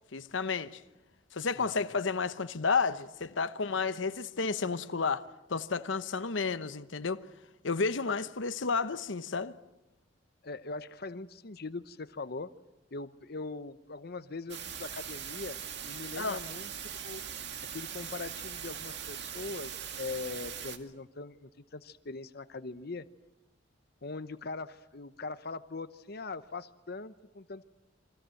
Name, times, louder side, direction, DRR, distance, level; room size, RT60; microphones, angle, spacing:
voice 1, 0.1-0.8 1.3-5.2 5.5-7.2 7.6-9.5 16.2-16.4, left 4 dB, 85° left, 1.0 m, -31 dB
voice 2, 1.6-1.9 10.4-12.5 12.9-15.6 15.8-17.2 17.7-23.1 24.0-27.6, left 3 dB, 55° left, 0.9 m, -41 dB
sound 1, 14.5-20.8, right 8 dB, 65° right, 2.2 m, -41 dB
29.0 x 23.5 x 7.8 m
head